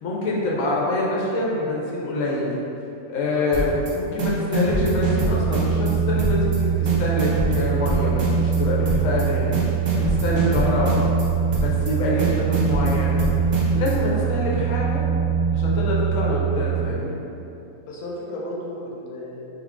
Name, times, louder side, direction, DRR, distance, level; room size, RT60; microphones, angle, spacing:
voice 1, 0.0-2.5 3.1-9.6 10.0-11.0 11.5-13.2 13.7-15.0 15.5-17.2, left 2 dB, 65° left, -4 dB, 1.0 m, -25 dB
sound 1, 3.5-3.9 4.2-5.9 6.2-6.6 6.9-8.6 8.9-9.2 9.5-11.2 11.5-11.9 12.2-13.9, right 2 dB, 85° right, 0.4 m, -25 dB
sound 2, 4.6-16.8, right 7 dB, 70° right, 0.8 m, -23 dB
voice 2, 17.8-19.4, left 1 dB, 90° left, -4 dB, 1.1 m, -34 dB
3.4 x 2.3 x 3.6 m, 2.9 s
omnidirectional pair, 1.6 m